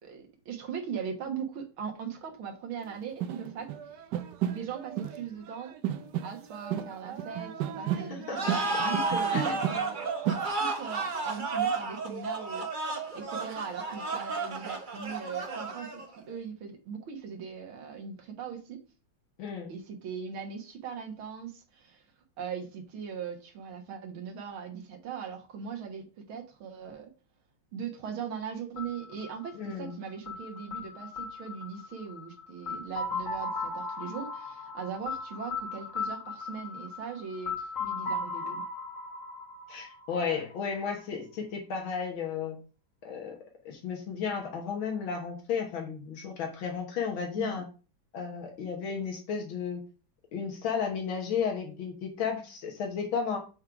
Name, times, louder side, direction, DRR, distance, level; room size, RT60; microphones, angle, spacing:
voice 1, 0.0-3.7 3.9-4.0 4.5-5.8 6.2-18.8 19.7-22.0 22.4-27.1 27.7-38.6 47.4-47.6, right 7 dB, 90° right, 2 dB, 2.1 m, -40 dB
sound 1, 2.8-2.9 3.2-5.2 5.5-10.5, right 10 dB, 65° right, 1.2 m, -34 dB
voice 2, 8.0-8.8 9.3-9.5 19.4-19.7 29.6-30.0 39.7-42.6 43.0-43.4 43.7-47.7 48.1-49.8 50.3-53.4, left 6 dB, 80° left, 1 dB, 2.1 m, -33 dB
sound 2, 8.3-16.2, right 3 dB, 40° right, 0.7 m, -32 dB
sound 3, 28.8-40.5, left 3 dB, 40° left, 2.4 m, -37 dB
6.3 x 3.8 x 5.9 m, 0.35 s
omnidirectional pair, 2.2 m